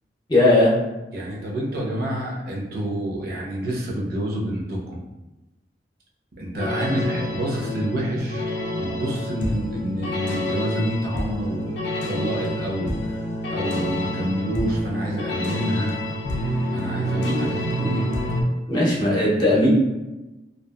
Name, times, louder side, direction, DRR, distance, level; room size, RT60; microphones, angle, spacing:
voice 1, 0.3-0.7 17.2-17.5 17.8-17.9 18.7-19.7, left 1 dB, 25° left, -5 dB, 0.6 m, -18 dB
voice 2, 1.1-5.0 6.3-11.7 12.1-13.2 13.5-15.9 16.7-18.1, equal, 60° right, -3 dB, 0.6 m, -28 dB
sound 1, 6.5-18.4, equal, 80° left, 0.5 m, -28 dB
2.7 x 2.3 x 2.3 m, 1.0 s
head